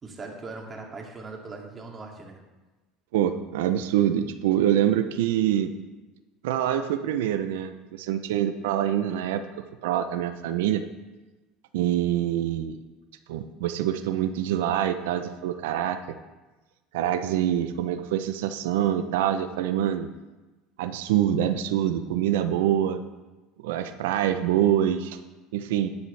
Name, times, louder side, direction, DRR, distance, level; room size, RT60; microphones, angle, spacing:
voice 1, 0.0-2.4, right 3 dB, 25° right, 0 dB, 2.3 m, -40 dB
voice 2, 3.1-5.7 6.4-9.5 9.8-10.8 11.7-12.8 13.3-16.0 16.9-20.1 20.8-23.0 23.6-25.2 25.5-25.9, right 11 dB, 85° right, 9 dB, 0.6 m, -25 dB
11.0 x 9.7 x 3.3 m, 1.2 s
supercardioid pair, 100°, 0 cm